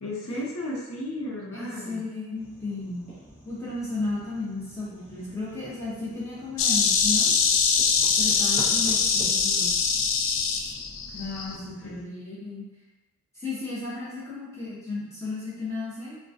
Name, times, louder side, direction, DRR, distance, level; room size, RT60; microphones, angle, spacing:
voice 1, 0.0-2.0 11.5-12.0, left 1 dB, 85° left, -4 dB, 0.7 m, -34 dB
voice 2, 1.5-3.0 3.4-7.3 8.2-9.8 11.1-12.6 13.3-16.2, left 3 dB, 15° left, -10 dB, 0.7 m, -34 dB
sound 1, 2.3-12.0, right 1 dB, 35° left, 1.1 m, -47 dB
Insect, 6.6-11.6, left 5 dB, 65° left, 0.3 m, -23 dB
3.7 x 2.2 x 2.6 m, 1.1 s
head